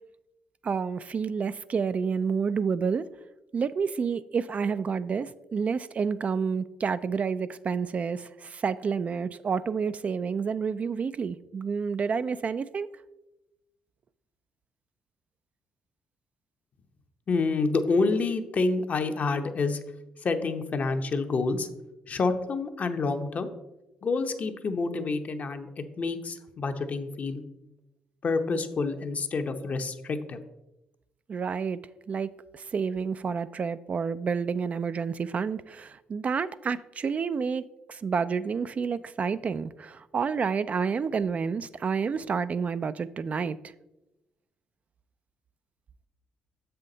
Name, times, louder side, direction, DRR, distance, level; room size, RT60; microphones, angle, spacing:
voice 1, 0.6-3.1 3.5-12.9 31.3-31.8 32.1-37.6 37.9-43.6, right 6 dB, 45° right, 0.3 m, -29 dB
voice 2, 17.3-19.8 20.2-21.7 22.1-23.5 24.0-27.4 28.2-30.4, left 3 dB, 50° left, 0.8 m, -28 dB
7.2 x 5.7 x 3.9 m
supercardioid pair, 65°, 3 cm